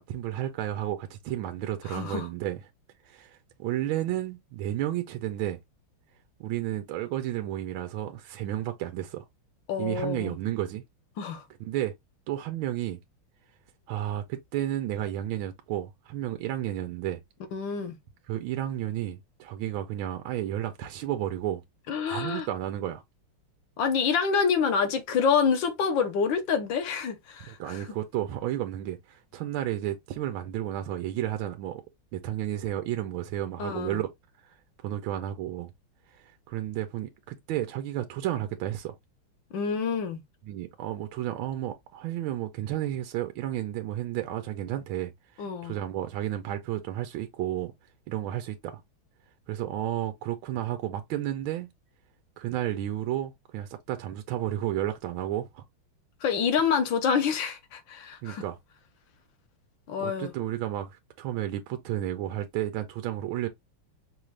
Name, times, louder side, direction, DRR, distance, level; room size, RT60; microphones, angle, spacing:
voice 1, 0.0-2.6 3.0-5.6 6.4-9.2 9.8-10.8 11.6-11.9 12.3-13.0 13.9-17.2 18.3-21.6 22.1-23.0 27.5-31.8 32.1-34.1 34.4-34.5 34.8-35.7 36.1-38.9 40.4-47.7 48.1-48.8 49.5-51.7 52.4-55.6 58.2-58.6 60.0-63.5, right 12 dB, 80° right, 1.4 m, -32 dB
voice 2, 1.9-2.3 9.7-10.4 11.2-11.4 17.5-18.0 21.9-22.5 23.8-27.8 33.6-34.0 39.5-40.2 45.4-45.7 56.2-58.4 59.9-60.3, left 6 dB, 70° left, 1.6 m, -27 dB
5.5 x 2.4 x 3.2 m
omnidirectional pair, 2.3 m